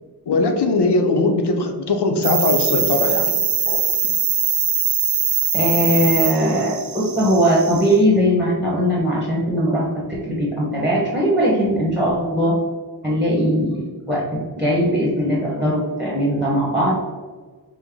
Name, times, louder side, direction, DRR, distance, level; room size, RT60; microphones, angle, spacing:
voice 1, 0.3-3.3, left 3 dB, 85° left, 4 dB, 0.6 m, -19 dB
sound 1, 2.2-8.0, right 7 dB, 65° right, 0.6 m, -22 dB
voice 2, 5.5-9.8 10.1-12.5 13.0-16.9, equal, 5° right, -6 dB, 1.1 m, -20 dB
5.3 x 2.0 x 3.6 m, 1.4 s
wide cardioid pair, 90°, 39 cm